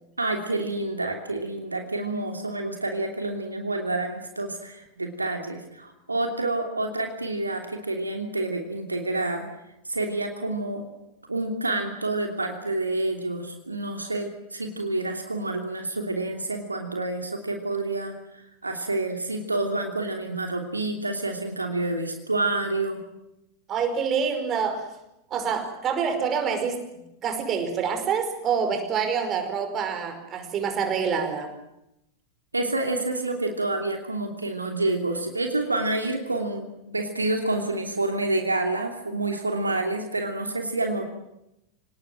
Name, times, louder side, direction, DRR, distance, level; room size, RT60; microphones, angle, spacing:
voice 1, 0.2-9.5 9.8-10.8 11.3-23.0 32.5-41.0, right 2 dB, 80° right, 4 dB, 3.0 m, -28 dB
voice 2, 23.7-24.9 25.3-26.8 27.2-31.5, right 6 dB, 30° right, 6 dB, 5.1 m, -26 dB
26.5 x 19.0 x 9.1 m, 0.86 s
figure-of-eight pair, 90°, 0 cm